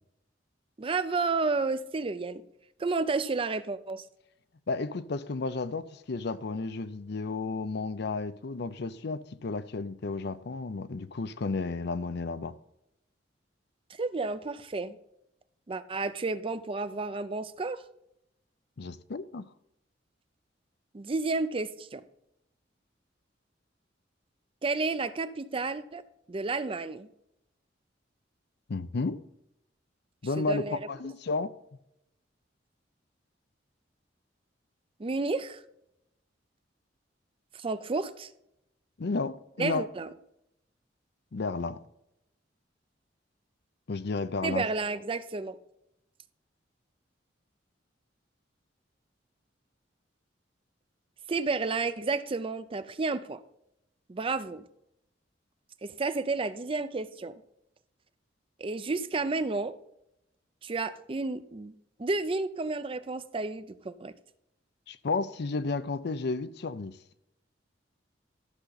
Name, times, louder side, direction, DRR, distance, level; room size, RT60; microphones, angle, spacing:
voice 1, 0.8-2.4 2.8-4.0 13.9-15.0 15.7-17.8 20.9-22.0 24.6-26.0 26.3-27.1 30.4-30.8 35.0-35.6 37.5-38.3 39.6-40.1 44.4-45.6 51.3-53.4 54.1-54.6 55.8-57.4 58.6-59.8 60.6-61.7 62.0-64.1, right 3 dB, 30° right, 0.5 m, -31 dB
voice 2, 4.7-12.5 18.8-19.5 28.7-29.2 30.2-31.5 39.0-39.9 41.3-41.8 43.9-44.6 64.9-67.0, left 3 dB, 60° left, 0.6 m, -32 dB
13.0 x 6.5 x 4.0 m
head